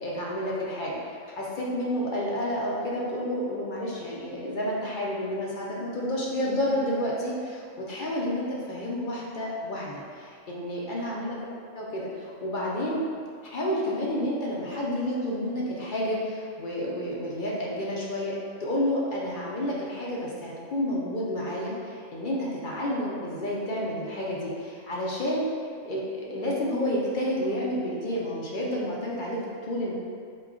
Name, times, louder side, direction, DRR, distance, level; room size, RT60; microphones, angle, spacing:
voice 1, 0.0-11.4 11.7-13.0 13.4-25.4 25.9-29.4 29.7-29.9, left 1 dB, 55° left, -4 dB, 0.6 m, -30 dB
4.4 x 2.3 x 3.6 m, 2.2 s
omnidirectional pair, 1.3 m